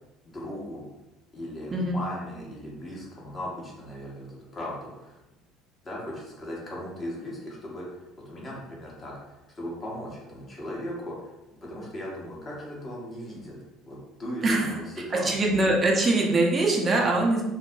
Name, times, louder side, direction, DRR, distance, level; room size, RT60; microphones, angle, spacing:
voice 1, 0.2-0.8 1.3-5.2 5.8-13.5 13.8-15.3, left 1 dB, 35° left, -4 dB, 1.0 m, -38 dB
voice 2, 14.4-14.7 15.2-17.4, right 2 dB, 30° right, -1 dB, 0.5 m, -23 dB
3.2 x 2.1 x 2.6 m, 0.98 s
figure-of-eight pair, 60°, 0 cm